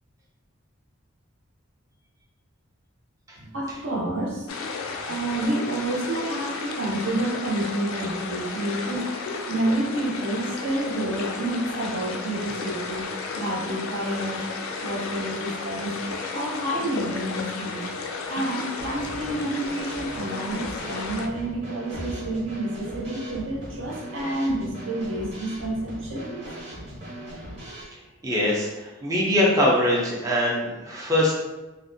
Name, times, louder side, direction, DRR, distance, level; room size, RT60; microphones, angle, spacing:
voice 1, 3.4-4.5 5.0-9.1 9.5-13.1 13.3-14.5 14.8-16.0 16.3-17.9 18.3-26.4, right 1 dB, 65° right, -3 dB, 0.6 m, -29 dB
sound 1, 4.5-21.3, left 4 dB, 70° left, 0.3 m, -33 dB
Telephone, 10.6-11.2 11.6-12.2 12.6-13.2 13.7-14.2 14.7-15.2 15.7-16.3 16.7-17.3 17.7-18.3 18.8-19.3 19.8-20.3 20.8-21.4 21.8-22.4 22.8-23.4, left 1 dB, 85° right, 1.0 m, -42 dB
Drum kit / Snare drum, 18.8-27.8, right 1 dB, 30° right, 0.7 m, -39 dB
voice 2, 28.2-31.3, left 1 dB, 15° right, -5 dB, 0.4 m, -22 dB
2.5 x 2.1 x 2.6 m, 1.1 s
head